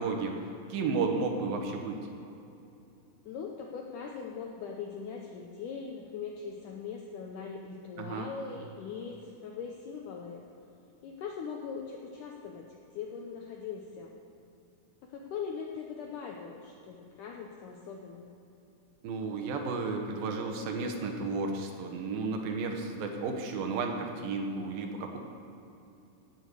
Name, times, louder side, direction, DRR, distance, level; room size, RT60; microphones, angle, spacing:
voice 1, 0.0-2.1 8.0-8.3 19.0-25.2, right 4 dB, 70° right, 3 dB, 2.7 m, -33 dB
voice 2, 3.2-10.4 11.0-14.2 15.0-18.3, left 6 dB, 80° left, 1 dB, 1.8 m, -41 dB
16.5 x 6.5 x 6.8 m, 2.8 s
omnidirectional pair, 4.6 m